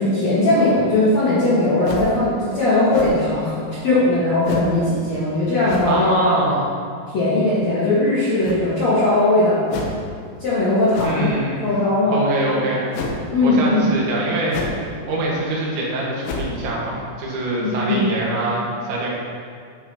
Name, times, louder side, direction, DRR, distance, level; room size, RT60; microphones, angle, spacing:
voice 1, 0.0-3.6 3.8-6.1 7.1-9.6 10.4-11.3 11.6-12.2 13.3-13.9 17.6-18.0, left 2 dB, 55° left, -10 dB, 2.0 m, -19 dB
sound 1, 1.8-2.2 2.9-3.4 4.4-4.8 5.6-6.0 8.4-8.9 9.7-10.1 10.9-11.3 12.9-13.2 14.5-14.9 15.2-15.3 16.2-16.6, left 3 dB, 80° left, 3.2 m, -30 dB
voice 2, 5.9-6.7 11.0-11.7 12.1-12.9 13.4-14.8 15.1-19.2, right 1 dB, 75° right, -4 dB, 3.8 m, -23 dB
11.0 x 9.0 x 3.0 m, 2.1 s
omnidirectional pair, 5.5 m